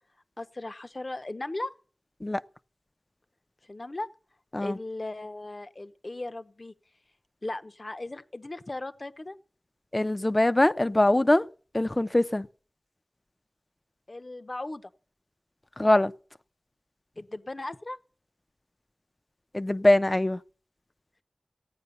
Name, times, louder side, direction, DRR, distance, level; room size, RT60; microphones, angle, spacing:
voice 1, 0.4-1.7 3.7-4.1 4.6-6.7 7.4-9.4 14.1-14.9 17.2-18.0, left 2 dB, 55° left, 0.9 m, -37 dB
voice 2, 9.9-11.5 11.7-12.5 15.8-16.1 19.5-20.4, left 1 dB, 35° left, 0.7 m, -22 dB
15.5 x 9.4 x 6.8 m
wide cardioid pair, 45°, 0 cm